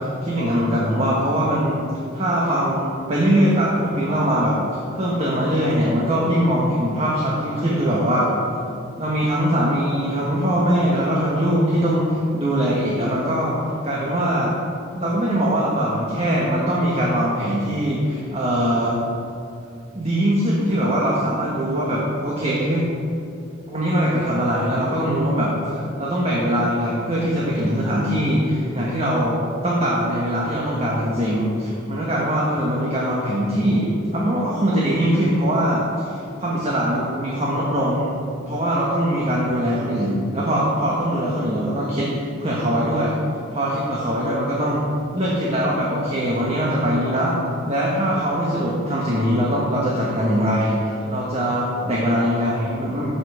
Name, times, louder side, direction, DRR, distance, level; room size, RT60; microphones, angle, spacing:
voice 1, 0.2-1.8 2.1-4.6 4.9-8.3 9.0-13.6 13.8-14.6 14.9-19.0 19.9-22.8 23.7-38.2 38.5-43.2 43.5-44.8 45.1-53.1, equal, 35° right, -5 dB, 1.4 m, -22 dB
14.0 x 5.5 x 4.9 m, 2.5 s
head